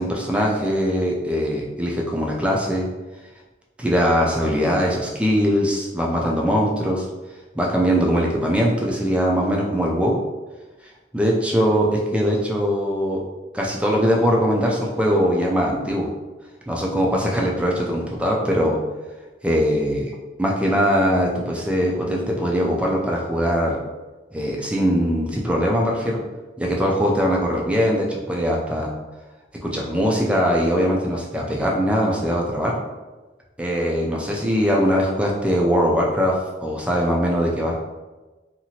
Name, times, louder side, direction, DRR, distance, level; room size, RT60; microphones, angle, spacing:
voice 1, 0.0-2.9 3.8-7.1 7.5-10.2 11.1-13.2 13.5-16.1 16.7-18.8 19.4-23.8 24.3-26.2 26.6-28.9 29.6-32.8 33.6-37.8, equal, 5° right, -2 dB, 0.4 m, -21 dB
2.8 x 2.5 x 2.8 m, 1.2 s
head